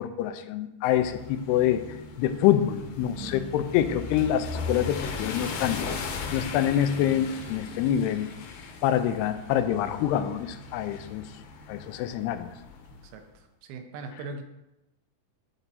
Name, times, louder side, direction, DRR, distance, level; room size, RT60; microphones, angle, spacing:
voice 1, 0.0-1.8 2.2-5.8 6.3-8.3 8.8-11.2 11.7-12.5, left 11 dB, 90° left, 10 dB, 2.6 m, -26 dB
sound 1, 0.9-13.1, left 4 dB, 70° left, 2.1 m, -38 dB
voice 2, 3.0-3.4 13.1-13.2 13.7-14.4, right 4 dB, 80° right, 6 dB, 2.6 m, -39 dB
12.0 x 4.5 x 4.1 m, 0.94 s
omnidirectional pair, 4.7 m